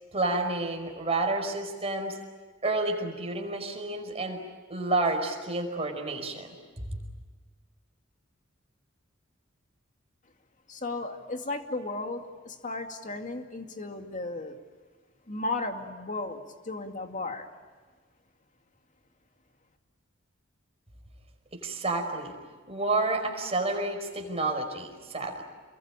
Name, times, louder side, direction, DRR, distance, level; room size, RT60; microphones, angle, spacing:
voice 1, 0.1-2.2 2.6-4.4 4.7-6.5 21.5-22.3 22.7-25.4, right 2 dB, 30° right, 3 dB, 5.2 m, -30 dB
voice 2, 10.7-14.6 15.3-17.5, left 2 dB, 40° left, 5 dB, 2.3 m, -35 dB
29.0 x 22.5 x 9.0 m, 1.5 s
head